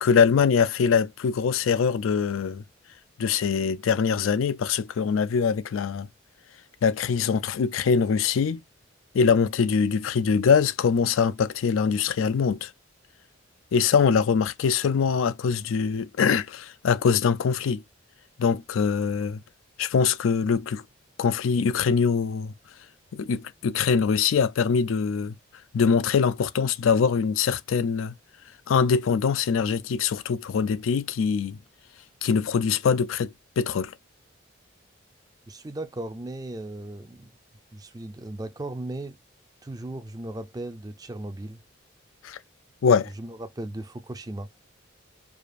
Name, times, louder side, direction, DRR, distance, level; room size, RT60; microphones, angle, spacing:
voice 1, 0.0-2.6 3.2-6.1 6.8-8.6 9.1-12.7 13.7-17.8 18.4-19.4 19.8-20.8 21.2-22.5 23.1-25.4 25.7-28.1 28.7-31.6 32.2-33.9 42.2-42.4 42.8-43.1, left 6 dB, 85° left, 0.4 m, -23 dB
voice 2, 35.5-37.3 37.7-39.2 39.6-41.6 43.0-44.5, right 1 dB, 20° right, 0.4 m, -36 dB
4.9 x 2.4 x 2.5 m
head